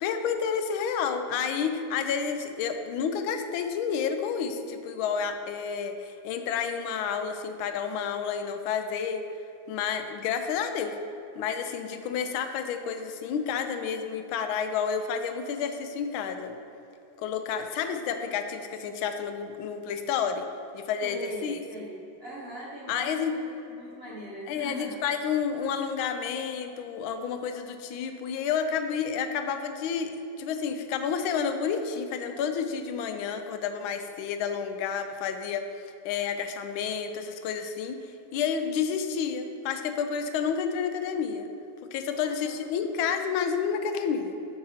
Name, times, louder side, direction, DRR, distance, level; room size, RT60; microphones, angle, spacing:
voice 1, 0.0-9.2 9.7-11.0 11.4-16.6 17.2-20.5 20.7-21.2 21.4-21.6 22.9-23.3 24.5-35.6 36.0-41.5 41.9-44.3, left 7 dB, 90° left, 7 dB, 1.4 m, -30 dB
voice 2, 21.0-25.0 42.2-42.5, right 1 dB, 45° right, -6 dB, 0.8 m, -41 dB
5.6 x 4.7 x 5.6 m, 2.8 s
omnidirectional pair, 2.2 m